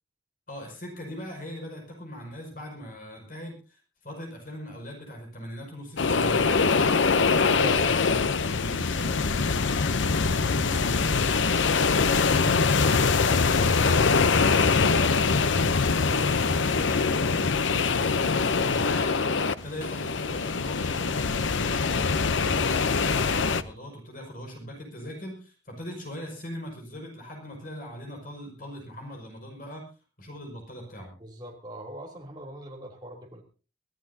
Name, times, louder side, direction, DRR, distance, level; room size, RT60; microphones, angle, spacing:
voice 1, 0.5-13.0 13.4-19.3 19.6-22.1 22.4-29.8 30.2-31.1, equal, 45° left, 1 dB, 5.8 m, -40 dB
sound 1, 6.0-23.6, left 4 dB, 80° left, 0.8 m, -23 dB
voice 2, 31.2-33.4, right 1 dB, 20° right, -1 dB, 3.2 m, -40 dB
24.0 x 15.0 x 2.8 m, 0.33 s
head